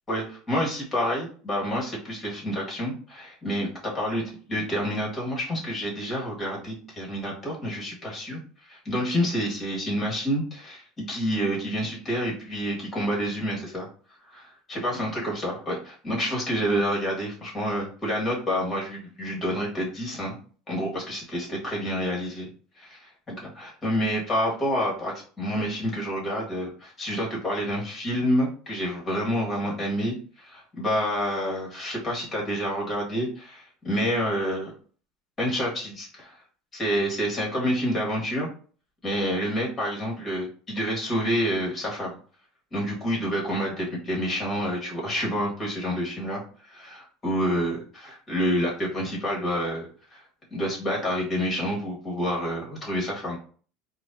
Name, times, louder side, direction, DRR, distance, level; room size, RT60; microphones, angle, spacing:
voice 1, 0.1-4.2 4.5-13.9 14.3-20.4 20.7-22.5 22.8-34.7 35.4-36.4 36.7-38.5 39.0-42.1 42.7-50.2 50.5-53.4, equal, 20° left, -2 dB, 1.7 m, -28 dB
4.8 x 2.3 x 2.6 m, 0.42 s
supercardioid pair, 130°, 0 cm